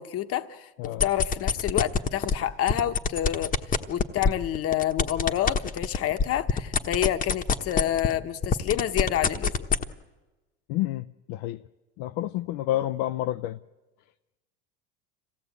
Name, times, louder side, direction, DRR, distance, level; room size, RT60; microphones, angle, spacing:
voice 1, 0.0-9.5, left 12 dB, 50° left, 1.1 m, -28 dB
sound 1, 0.8-2.3 2.7-8.2 8.4-9.8, left 5 dB, 25° left, 1.1 m, -24 dB
voice 2, 10.7-11.6 12.0-13.6, left 14 dB, 65° left, 0.6 m, -29 dB
26.0 x 16.5 x 8.3 m
supercardioid pair, 110°, 30 cm